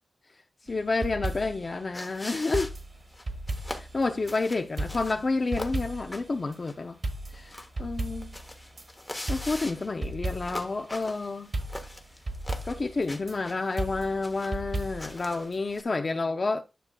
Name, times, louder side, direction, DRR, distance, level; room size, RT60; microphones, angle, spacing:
voice 1, 0.6-2.7 3.8-7.0 7.3-8.3 9.3-11.5 12.6-16.6, left 3 dB, 40° left, 0.6 m, -29 dB
sound 1, 0.7-1.7 2.5-4.4 4.8-6.2 6.5-6.6 7.0-8.9 9.3-10.7 11.0-11.1 11.5-13.3 13.8-15.2 15.5-15.6, right 2 dB, 45° right, 1.4 m, -35 dB
sound 2, 1.9-15.8, left 1 dB, 15° left, 1.0 m, -43 dB
9.9 x 6.6 x 2.3 m
wide cardioid pair, 115°, 0 cm